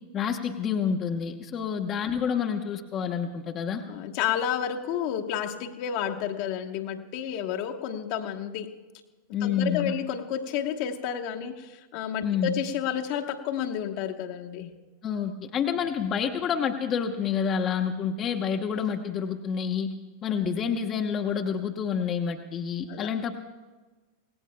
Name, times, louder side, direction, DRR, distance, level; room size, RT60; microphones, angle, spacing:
voice 1, 0.1-3.8 9.3-9.9 12.2-12.6 15.0-19.9 20.2-23.4, left 7 dB, 30° left, 3 dB, 1.0 m, -28 dB
voice 2, 3.9-8.7 9.4-14.7 22.9-23.1, left 9 dB, 45° left, 3 dB, 1.2 m, -31 dB
26.5 x 18.0 x 2.2 m, 1.2 s
figure-of-eight pair, 90°, 0 cm